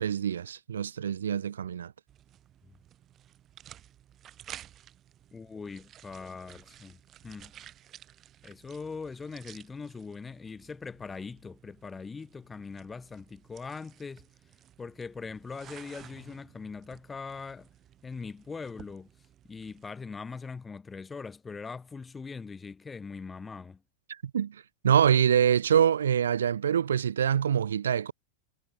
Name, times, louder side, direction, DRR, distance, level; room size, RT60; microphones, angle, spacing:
voice 1, 0.0-1.9 24.1-28.1, right 8 dB, 65° right, 0.4 m, -25 dB
sound 1, 2.1-19.9, right 11 dB, 30° right, 4.0 m, -53 dB
voice 2, 5.3-7.0 7.2-7.5 8.4-14.3 14.8-17.7 18.0-19.1 19.5-23.8, left 4 dB, 15° left, 0.7 m, -41 dB
figure-of-eight pair, 90°, 0 cm